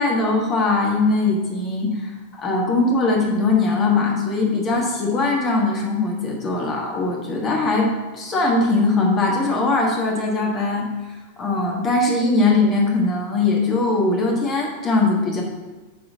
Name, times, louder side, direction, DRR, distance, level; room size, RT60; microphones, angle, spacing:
voice 1, 0.0-2.1 2.4-10.9 11.4-15.4, left 3 dB, 30° left, -1 dB, 1.6 m, -20 dB
9.3 x 3.9 x 6.2 m, 1.3 s
figure-of-eight pair, 90°, 0 cm